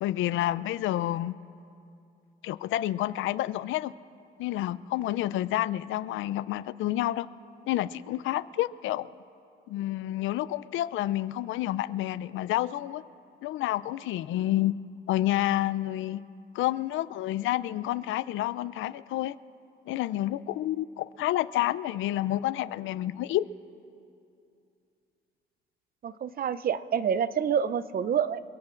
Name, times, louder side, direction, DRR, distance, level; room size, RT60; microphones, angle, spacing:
voice 1, 0.0-1.4 2.4-3.9 4.4-7.3 7.7-9.1 9.7-13.0 13.4-14.7 15.1-16.2 16.5-19.4 19.9-23.4, left 14 dB, 80° left, 18 dB, 0.4 m, -29 dB
voice 2, 26.0-28.4, right 8 dB, 50° right, 15 dB, 0.5 m, -27 dB
28.5 x 17.0 x 2.5 m, 2.5 s
cardioid pair, 90°, 20 cm